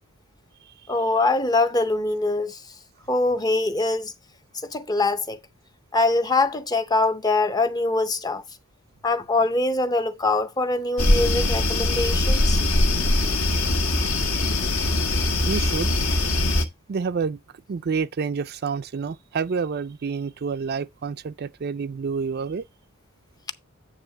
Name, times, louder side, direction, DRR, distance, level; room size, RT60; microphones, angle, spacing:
voice 1, 0.9-2.6 3.1-4.1 4.5-5.4 5.9-8.4 9.0-12.6, left 2 dB, 15° left, 0.6 m, -23 dB
sound 1, 11.0-16.6, left 2 dB, 65° left, 1.6 m, -22 dB
voice 2, 15.5-15.9 16.9-17.4 17.7-22.6, right 5 dB, 45° right, 0.4 m, -28 dB
9.1 x 3.2 x 6.4 m
head